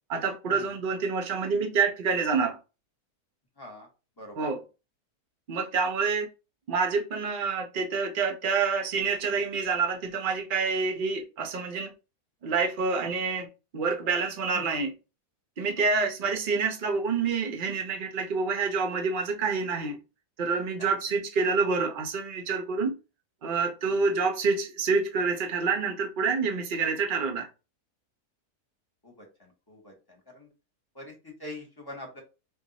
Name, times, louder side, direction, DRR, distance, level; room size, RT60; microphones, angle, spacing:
voice 1, 0.1-2.6 4.3-4.6 5.5-6.3 6.7-11.9 12.4-13.5 13.7-14.9 15.6-20.0 20.4-23.0 23.4-27.5, right 4 dB, 55° right, 0.6 m, -27 dB
voice 2, 3.6-3.9 4.2-4.5 14.5-14.6 15.8-15.9 20.8-20.9 23.9-24.0 29.0-29.2 29.7-29.9 30.3-30.5 30.9-32.2, left 1 dB, 20° left, 0.9 m, -43 dB
2.5 x 2.3 x 3.9 m
omnidirectional pair, 1.6 m